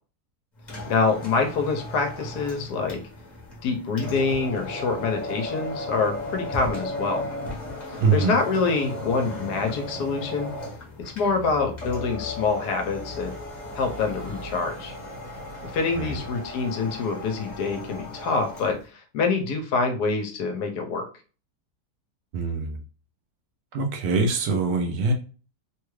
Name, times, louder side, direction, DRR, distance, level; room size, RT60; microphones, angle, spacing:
sound 1, 0.6-18.8, left 1 dB, 35° left, 0.9 m, -36 dB
voice 1, 0.9-3.0 3.6-7.2 8.1-10.5 11.2-13.3 13.7-14.9 15.6-21.1, left 4 dB, 75° left, 4 dB, 1.3 m, -26 dB
voice 2, 8.0-8.3 16.0-16.1 22.3-22.8 23.7-25.1, right 4 dB, 70° right, 3 dB, 1.1 m, -23 dB
3.3 x 2.3 x 3.1 m, 0.35 s
omnidirectional pair, 1.8 m